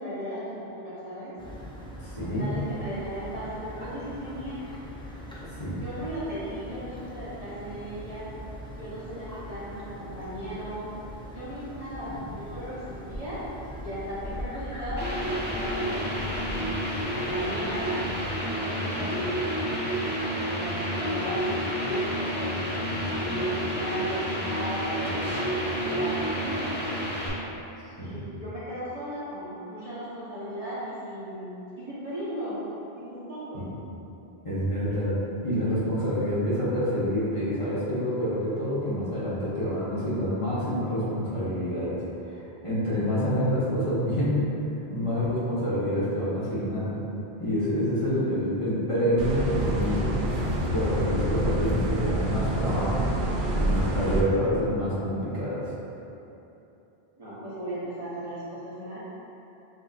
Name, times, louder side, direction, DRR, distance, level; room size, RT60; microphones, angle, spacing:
voice 1, 0.0-1.3 2.2-4.7 5.8-8.3 8.8-10.9 11.3-13.4 13.8-16.8 17.1-19.4 20.3-22.8 23.4-25.2 25.6-26.8 28.0-32.6 33.0-33.6 57.2-59.0, equal, 35° right, -12 dB, 1.1 m, -37 dB
sound 1, 1.4-18.3, equal, 10° left, 0.3 m, -41 dB
voice 2, 2.0-2.5 5.6-5.8 12.1-12.3 18.9-19.1 22.9-23.6 28.0-28.3 33.5-33.7 34.4-35.2 35.4-42.0 42.3-44.4 44.9-47.0 47.4-50.2 50.7-53.1 53.6-55.7, equal, 30° left, -12 dB, 1.1 m, -27 dB
sound 2, 15.0-27.3, equal, 10° right, 0.8 m, -29 dB
sound 3, 49.2-54.2, right 1 dB, 60° right, 0.6 m, -27 dB
6.4 x 2.9 x 2.5 m, 2.9 s
omnidirectional pair, 1.1 m